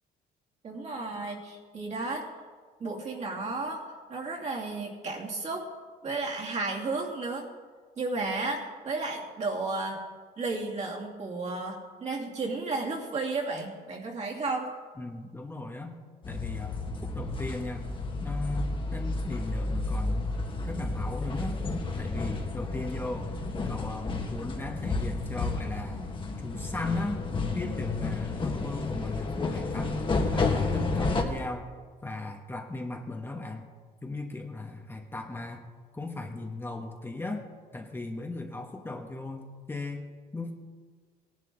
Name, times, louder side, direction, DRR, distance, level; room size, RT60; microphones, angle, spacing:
voice 1, 0.6-2.3 2.8-3.8 4.1-5.7 6.0-7.5 8.0-10.0 10.4-14.7, right 3 dB, 40° right, -2 dB, 2.6 m, -33 dB
voice 2, 15.0-16.0 16.2-17.8 18.2-20.3 20.6-21.6 22.0-23.3 23.7-26.0 26.4-27.3 27.5-30.0 30.3-31.7 32.0-33.7 34.0-35.7 35.9-37.5 37.7-40.5, left 2 dB, 15° left, 2 dB, 1.1 m, -37 dB
sound 1, 16.2-31.2, left 3 dB, 30° left, 1.6 m, -31 dB
17.5 x 11.0 x 3.8 m, 1.5 s
cardioid pair, 110°, 17 cm